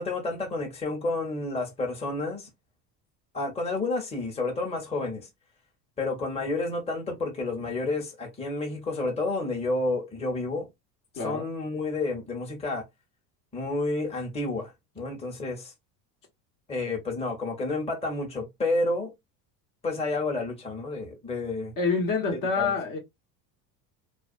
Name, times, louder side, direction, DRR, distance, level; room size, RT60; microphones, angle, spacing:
voice 1, 0.0-2.5 3.3-5.3 6.0-10.7 11.2-12.8 13.5-15.7 16.7-19.1 19.8-21.7 22.3-22.7, left 2 dB, 10° left, 0.9 m, -30 dB
voice 2, 11.2-11.5 21.8-23.0, left 4 dB, 40° left, 1.0 m, -27 dB
2.5 x 2.3 x 2.4 m
hypercardioid pair, 85°, 49 cm